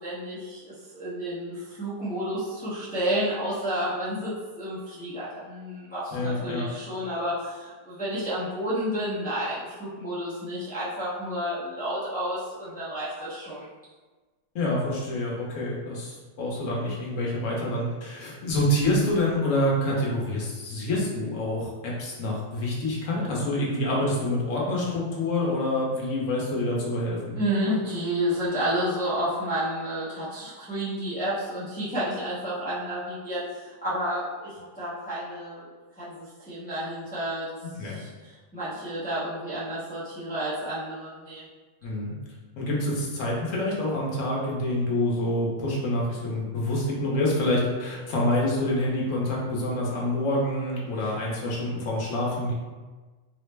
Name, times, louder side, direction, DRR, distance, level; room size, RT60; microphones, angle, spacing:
voice 1, 0.0-13.7 27.3-35.7 36.0-41.4, equal, 15° left, -12 dB, 0.3 m, -31 dB
voice 2, 6.1-6.7 14.5-27.4 37.6-38.0 41.8-42.1 42.6-52.5, left 1 dB, 55° left, -4 dB, 1.0 m, -27 dB
3.9 x 2.0 x 3.3 m, 1.3 s
omnidirectional pair, 1.8 m